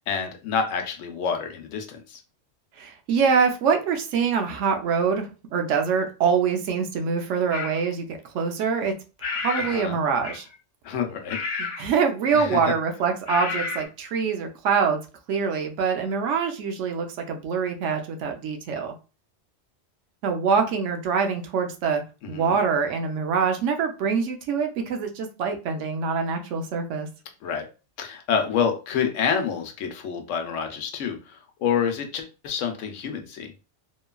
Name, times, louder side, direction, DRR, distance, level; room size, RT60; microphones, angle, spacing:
voice 1, 0.1-2.2 9.6-10.0 10.8-11.4 12.3-12.7 22.2-22.6 27.4-27.7 28.0-33.5, left 7 dB, 85° left, 5 dB, 1.0 m, -28 dB
voice 2, 2.8-8.9 9.2-10.5 11.6-15.0 15.3-18.9 20.2-22.0 22.3-27.1, right 6 dB, 85° right, 4 dB, 0.9 m, -25 dB
sound 1, 7.5-7.8 9.2-9.8 10.2-10.5 11.3-11.9 13.3-13.8, left 4 dB, 50° left, 0.7 m, -30 dB
3.0 x 2.3 x 2.2 m, 0.32 s
omnidirectional pair, 1.2 m